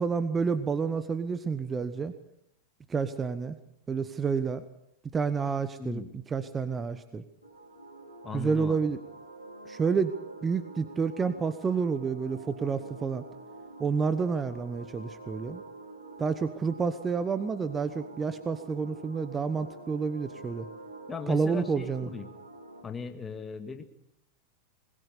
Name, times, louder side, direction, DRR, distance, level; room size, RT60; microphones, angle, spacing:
voice 1, 0.0-2.1 2.9-3.6 3.9-4.6 5.1-6.0 6.3-7.2 8.3-9.0 9.7-10.1 10.4-13.2 13.8-15.6 16.2-20.7 21.3-22.1, right 5 dB, 20° right, 12 dB, 1.0 m, -29 dB
voice 2, 5.8-6.1 8.2-8.8 21.1-22.3 22.8-23.8, left 5 dB, 15° left, 7 dB, 2.0 m, -38 dB
sound 1, 7.4-22.8, right 2 dB, 90° left, 5.0 m, -47 dB
21.0 x 20.0 x 6.9 m, 0.76 s
figure-of-eight pair, 90°, 0 cm